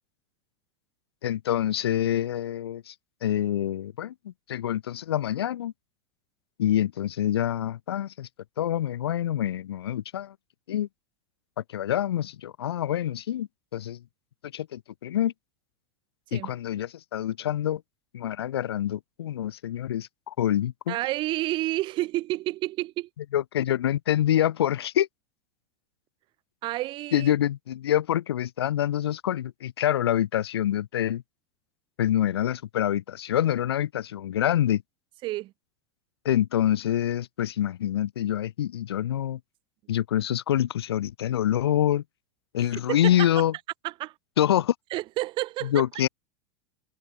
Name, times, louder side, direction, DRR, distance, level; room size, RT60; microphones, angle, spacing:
voice 1, 1.2-2.9 3.2-5.7 6.6-8.3 8.6-10.3 10.7-10.9 11.7-14.0 14.4-15.3 16.3-17.8 18.1-21.0 23.3-25.1 27.1-31.2 32.0-34.8 36.2-39.4 39.9-42.0 42.5-43.5 44.4-44.7 45.6-46.1, left 11 dB, 85° left, 0.6 m, -26 dB
voice 2, 20.9-23.1 26.6-27.3 35.2-35.5 42.7-43.3 43.8-44.1 44.9-45.8, right 17 dB, 40° right, 0.4 m, -30 dB
hypercardioid pair, 100°, 13 cm